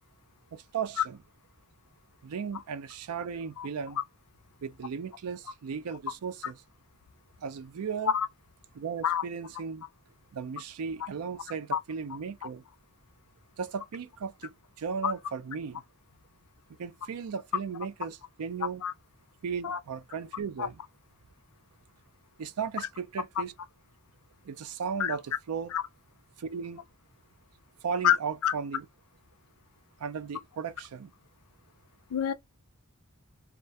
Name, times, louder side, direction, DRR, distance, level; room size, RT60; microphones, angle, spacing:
voice 1, 0.5-1.2 2.2-4.0 4.6-6.6 7.4-8.1 8.7-9.9 10.3-12.6 13.6-15.8 16.8-18.8 19.4-20.8 22.4-23.5 24.4-25.7 26.4-26.9 27.8-28.9 30.0-31.1, right 6 dB, 80° right, 0.4 m, -36 dB
voice 2, 3.6-3.7 8.1-8.3 9.0-9.2 11.7-11.8 15.0-15.1 18.8-18.9 19.6-19.8 20.6-20.7 25.0-25.2 25.7-25.8 28.0-28.2 28.4-28.5 32.1-32.3, left 9 dB, 70° left, 0.4 m, -26 dB
2.4 x 2.1 x 2.6 m
head